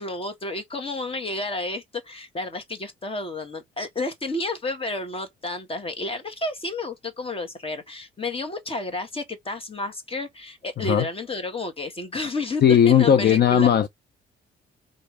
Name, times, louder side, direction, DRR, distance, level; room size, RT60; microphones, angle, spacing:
voice 1, 0.0-13.7, left 2 dB, 30° left, 1.6 m, -31 dB
voice 2, 12.6-13.9, left 9 dB, 55° left, 0.7 m, -17 dB
3.9 x 3.2 x 3.3 m
cardioid pair, 90°, 20 cm